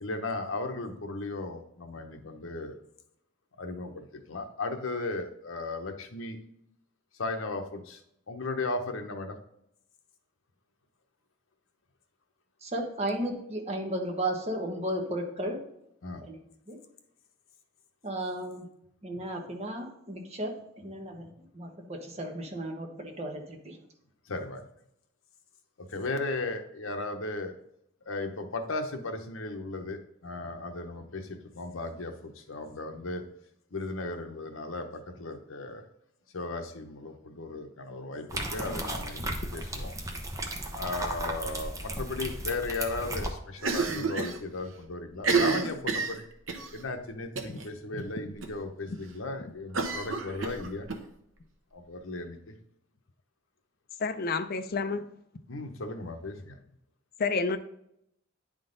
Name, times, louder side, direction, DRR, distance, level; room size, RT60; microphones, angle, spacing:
voice 1, 0.0-2.8 3.6-6.4 7.1-8.0 8.3-9.4 16.0-16.2 24.3-24.6 25.8-27.5 28.1-33.2 33.7-35.9 36.3-40.0 40.7-46.2 46.7-50.9 51.7-52.6 55.5-56.6, left 2 dB, 80° left, 5 dB, 0.9 m, -36 dB
voice 2, 12.6-15.6 16.2-16.4 16.7-16.8 18.0-18.7 19.0-21.3 21.5-23.8, right 1 dB, 30° right, 2 dB, 1.1 m, -34 dB
sound 1, 38.3-43.3, right 1 dB, 15° right, 0.8 m, -35 dB
Cough, 43.6-44.4 44.7-44.8 45.1-46.7 47.4-47.7 48.0-48.1 48.4-48.5 49.7-51.0, right 4 dB, 75° right, 0.9 m, -29 dB
voice 3, 54.0-55.1 57.2-57.6, left 4 dB, 50° left, 10 dB, 0.5 m, -29 dB
9.9 x 3.7 x 3.9 m, 0.76 s
head